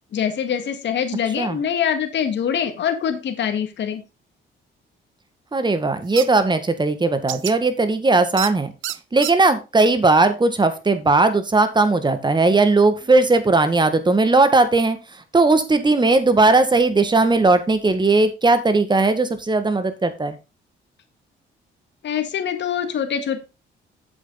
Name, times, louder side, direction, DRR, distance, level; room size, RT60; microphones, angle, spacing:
voice 1, 0.1-4.0 22.0-23.4, left 8 dB, 65° left, 7 dB, 1.8 m, -24 dB
voice 2, 5.5-8.7 9.1-15.0 15.3-20.4, right 3 dB, 20° right, 10 dB, 1.8 m, -18 dB
sound 1, 6.2-6.3 7.3-7.5 8.4-8.5 8.8-9.3, right 15 dB, 80° right, 0.6 m, -27 dB
8.1 x 7.5 x 4.0 m, 0.27 s
cardioid pair, 90°, 20 cm